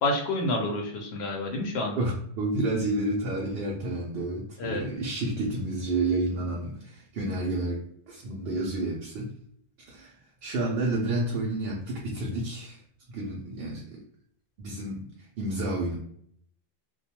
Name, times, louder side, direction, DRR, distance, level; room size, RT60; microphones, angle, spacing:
voice 1, 0.0-2.0 4.6-4.9, left 2 dB, 90° left, 2 dB, 0.8 m, -29 dB
voice 2, 2.0-9.3 9.9-12.8 13.1-14.0 14.6-16.0, right 2 dB, 75° right, -2 dB, 0.8 m, -30 dB
2.3 x 2.2 x 2.8 m, 0.66 s
omnidirectional pair, 1.0 m